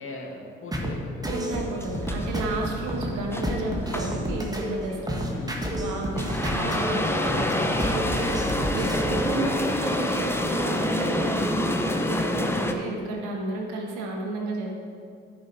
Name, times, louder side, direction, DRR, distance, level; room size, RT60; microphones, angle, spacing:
voice 1, 0.0-1.4 2.9-3.2 5.2-5.6 6.2-6.5, left 2 dB, 40° left, -1 dB, 2.0 m, -39 dB
sound 1, 0.7-9.4, equal, 10° right, 1.4 m, -30 dB
voice 2, 1.2-5.2 5.7-14.7, right 2 dB, 65° right, 0 dB, 1.5 m, -32 dB
sound 2, 1.4-12.7, left 1 dB, 5° left, 0.9 m, -28 dB
10.0 x 5.6 x 4.7 m, 2.3 s
hypercardioid pair, 50°, 32 cm